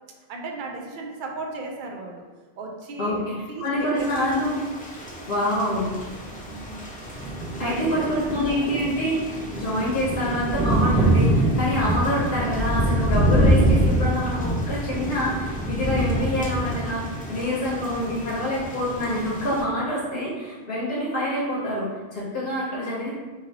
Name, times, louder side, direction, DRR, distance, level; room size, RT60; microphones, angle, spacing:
voice 1, 0.3-2.2 2.6-4.3 5.0-5.7 6.3-6.8 7.5-8.5 16.1-16.3 17.6-17.7, right 3 dB, 60° right, 1 dB, 0.6 m, -36 dB
voice 2, 3.0-4.6 5.3-5.9 7.6-23.1, left 1 dB, 65° left, -7 dB, 0.9 m, -26 dB
Thunder / Rain, 4.0-19.6, right 1 dB, 10° left, 0.4 m, -25 dB
3.1 x 2.5 x 2.7 m, 1.3 s
omnidirectional pair, 1.0 m